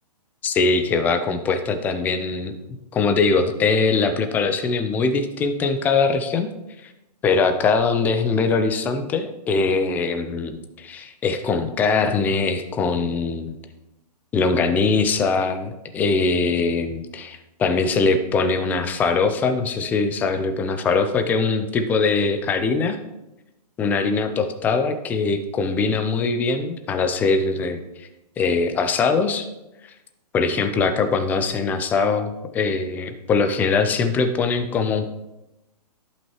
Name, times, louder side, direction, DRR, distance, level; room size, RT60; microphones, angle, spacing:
voice 1, 0.4-2.5 2.9-6.5 6.8-6.9 7.2-13.5 14.3-23.0 23.8-28.1 28.4-29.5 30.3-35.1, left 4 dB, 10° left, 9 dB, 0.3 m, -22 dB
11.0 x 5.6 x 3.0 m, 0.95 s
hypercardioid pair, 130°, 21 cm